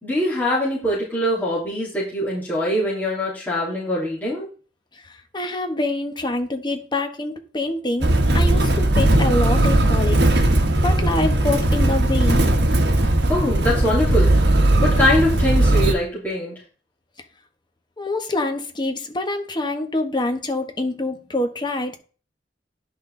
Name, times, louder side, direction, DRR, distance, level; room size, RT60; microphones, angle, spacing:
voice 1, 0.0-4.5 13.3-14.3 14.8-16.5, left 1 dB, 10° left, 3.6 m, -23 dB
voice 2, 4.9-10.2 10.8-12.4 18.0-22.0, left 2 dB, 25° left, 1.2 m, -26 dB
Motor vehicle (road), 8.0-15.9, right 1 dB, 70° right, 1.3 m, -18 dB
10.5 x 6.2 x 3.8 m
head